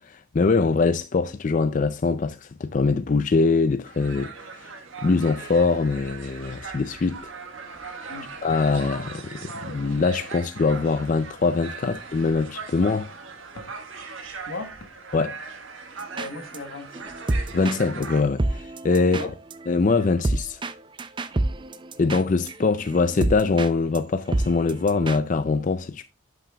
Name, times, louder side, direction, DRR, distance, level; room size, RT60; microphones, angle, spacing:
voice 1, 0.0-4.7 5.0-7.3 8.4-13.1 15.1-15.4 17.5-19.2 19.7-20.6 22.0-26.0, left 4 dB, 40° left, 0.4 m, -23 dB
sound 1, 3.9-18.2, right 4 dB, 75° right, 1.4 m, -39 dB
voice 2, 14.5-14.9 16.1-17.1 19.0-19.3 21.3-21.5, left 2 dB, 85° left, 1.3 m, -37 dB
sound 2, 16.0-16.6 16.9-23.7 23.9-24.0 24.3-25.2, right 2 dB, 25° right, 0.4 m, -28 dB
8.8 x 7.6 x 2.3 m
head